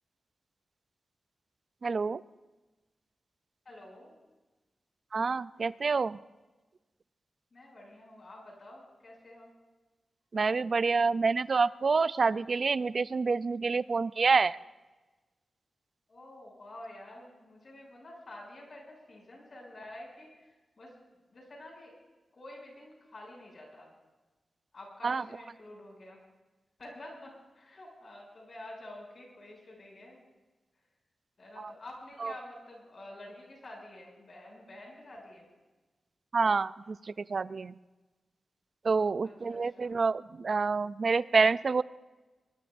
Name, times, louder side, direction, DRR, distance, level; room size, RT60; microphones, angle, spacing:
voice 1, 1.8-2.2 5.1-6.2 10.3-14.6 25.0-25.2 31.6-31.7 32.2-32.3 36.3-37.7 38.8-41.8, right 4 dB, 50° right, 16 dB, 0.4 m, -27 dB
voice 2, 3.6-4.1 7.5-9.5 16.1-20.9 21.3-21.9 22.3-23.9 24.7-26.2 26.8-30.2 31.4-35.4 39.2-40.0, left 1 dB, 50° left, 0 dB, 7.2 m, -49 dB
24.5 x 21.0 x 2.6 m, 1.2 s
wide cardioid pair, 105°, 0 cm